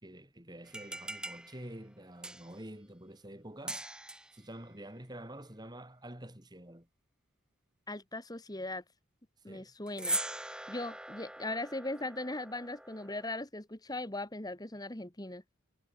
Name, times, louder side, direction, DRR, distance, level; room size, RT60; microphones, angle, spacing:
voice 1, 0.0-3.9 4.3-6.9 9.5-9.7, right 1 dB, 20° right, 3.5 m, -48 dB
sound 1, 0.6-2.7 3.7-4.4 9.9-13.4, right 1 dB, 5° right, 3.2 m, -41 dB
voice 2, 7.9-8.8 9.4-10.2 10.4-15.4, left 2 dB, 20° left, 1.7 m, -39 dB
head